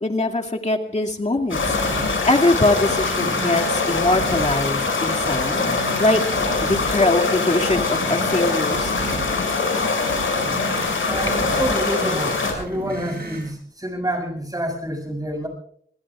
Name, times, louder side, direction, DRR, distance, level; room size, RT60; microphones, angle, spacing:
voice 1, 0.0-2.0 2.2-5.6 6.0-6.2 6.6-9.0, left 2 dB, 35° left, 1 dB, 2.3 m, -22 dB
sound 1, 1.5-12.5, left 4 dB, 80° left, 6.7 m, -23 dB
sound 2, 1.5-13.5, right 3 dB, 50° right, 7.9 m, -34 dB
voice 2, 11.1-15.5, equal, 20° right, 4 dB, 7.0 m, -28 dB
28.0 x 21.0 x 2.4 m, 0.62 s
wide cardioid pair, 70°, 20 cm